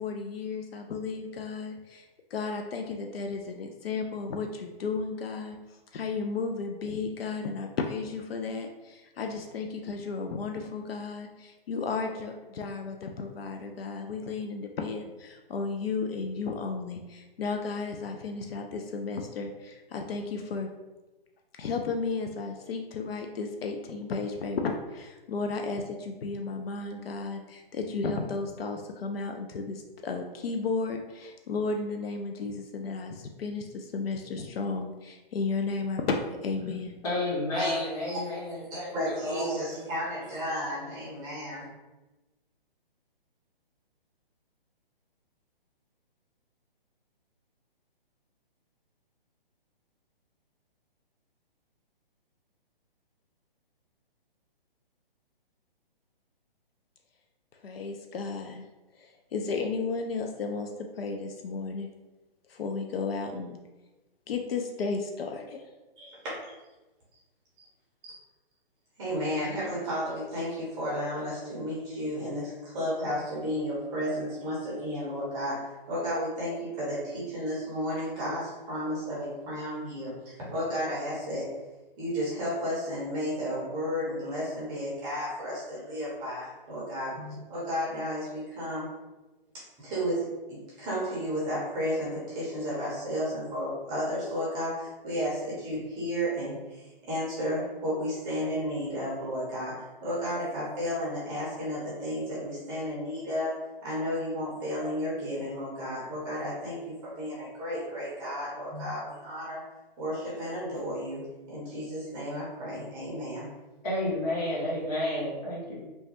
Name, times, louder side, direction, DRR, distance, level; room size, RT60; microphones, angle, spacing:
voice 1, 0.0-20.7 21.6-37.0 57.5-58.6 58.9-60.7 61.0-61.9 62.5-63.6 64.3-65.6, left 4 dB, 80° left, 4 dB, 0.4 m, -33 dB
voice 2, 37.0-39.8 113.8-115.8, left 1 dB, 40° left, -7 dB, 1.5 m, -31 dB
voice 3, 37.5-41.7 66.0-66.2 68.0-68.1 69.0-81.6 82.0-88.9 89.8-109.6 110.0-113.5, equal, 15° right, -7 dB, 0.6 m, -33 dB
3.1 x 2.2 x 2.9 m, 1.1 s
hypercardioid pair, 145°, 29 cm